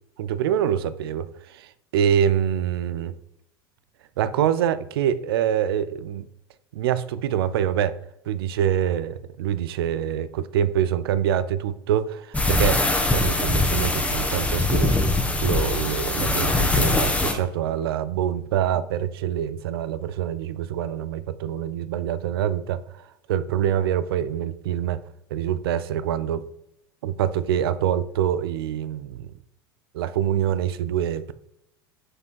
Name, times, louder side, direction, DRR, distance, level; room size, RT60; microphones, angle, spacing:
voice 1, 0.2-3.1 4.2-6.3 6.7-8.0 8.3-12.8 13.1-14.9 15.4-23.0 23.3-25.0 25.3-26.5 27.0-29.3 29.9-31.3, right 10 dB, 80° right, 0.5 m, -25 dB
sound 1, 12.3-17.3, left 2 dB, 10° left, 1.3 m, -22 dB
5.9 x 5.2 x 4.6 m
hypercardioid pair, 90°, 12 cm